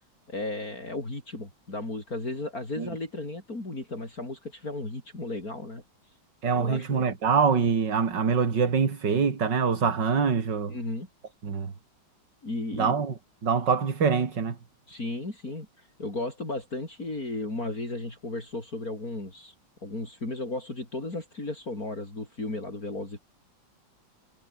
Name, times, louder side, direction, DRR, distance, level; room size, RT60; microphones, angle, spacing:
voice 1, 0.3-5.8 6.5-7.1 10.7-11.1 12.4-13.0 14.9-19.5 19.8-23.2, left 2 dB, 45° left, 6.3 m, -35 dB
voice 2, 6.4-10.7 11.4-11.7 12.7-13.1 13.4-14.6, right 6 dB, 60° right, 3.1 m, -24 dB
omnidirectional pair, 2.2 m